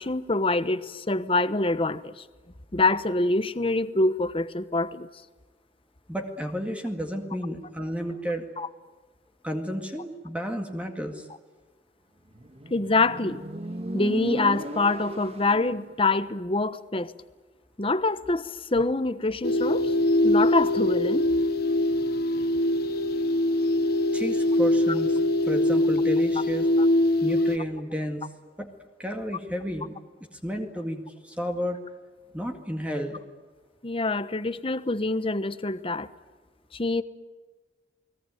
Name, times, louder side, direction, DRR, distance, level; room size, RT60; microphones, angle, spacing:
voice 1, 0.0-2.2 2.7-5.1 8.6-8.7 12.7-13.4 13.9-17.1 17.8-19.9 20.2-21.3 33.8-36.1 36.7-37.0, left 2 dB, 30° left, 13 dB, 1.1 m, -25 dB
voice 2, 6.1-8.4 9.4-11.3 24.1-25.2 25.4-26.7 27.2-28.3 28.6-28.7 29.0-30.0 30.3-31.8 32.3-33.2, equal, 10° right, 4 dB, 2.0 m, -32 dB
Motorcycle, 12.3-15.8, right 1 dB, 35° right, 1.7 m, -35 dB
sound 1, 19.4-27.6, left 1 dB, 65° left, 1.5 m, -23 dB
30.0 x 20.5 x 9.3 m, 1.3 s
head